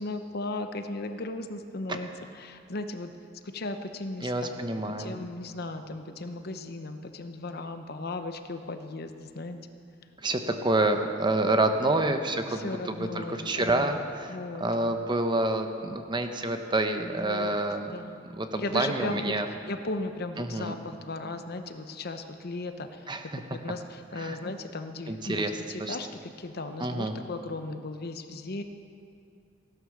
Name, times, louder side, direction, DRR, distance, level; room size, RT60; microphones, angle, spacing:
voice 1, 0.0-2.1 2.3-3.1 3.4-4.3 5.0-9.6 12.5-13.9 14.2-15.0 17.2-18.2 18.6-23.1 23.5-28.6, left 2 dB, 55° left, 8 dB, 0.8 m, -36 dB
voice 2, 4.2-5.2 10.2-14.3 14.6-17.9 18.4-19.5 20.4-20.7 23.1-23.2 24.2-24.4 25.1-25.5 25.8-26.0 26.8-27.1, right 2 dB, 25° right, 6 dB, 0.8 m, -28 dB
16.5 x 11.5 x 6.5 m, 2.4 s
head